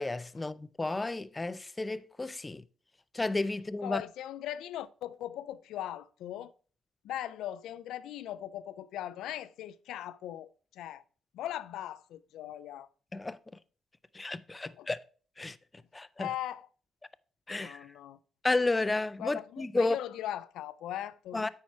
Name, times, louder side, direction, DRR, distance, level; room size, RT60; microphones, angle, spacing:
voice 1, 0.0-2.6 3.1-4.0 13.1-13.4 14.1-15.0 15.4-15.6 15.9-16.3 17.5-17.9 18.4-20.0 21.3-21.5, left 2 dB, 20° left, 0.4 m, -32 dB
voice 2, 3.8-6.5 7.0-11.0 11.3-12.9 14.6-14.9 16.2-16.7 17.5-18.2 19.2-21.5, left 12 dB, 85° left, 0.4 m, -39 dB
8.7 x 4.7 x 4.2 m
cardioid pair, 90°, 0 cm